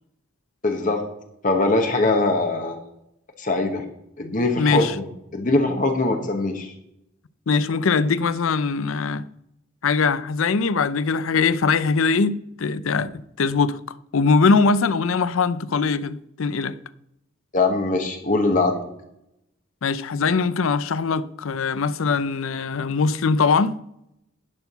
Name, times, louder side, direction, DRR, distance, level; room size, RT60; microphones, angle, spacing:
voice 1, 0.6-1.0 1.4-2.8 3.4-3.8 4.2-5.1 5.3-6.7 17.5-18.8, left 2 dB, 40° left, 1.1 m, -22 dB
voice 2, 4.6-5.0 7.5-9.3 9.8-13.1 13.4-16.7 19.8-23.8, left 4 dB, 75° left, 0.5 m, -21 dB
11.0 x 4.6 x 6.7 m
head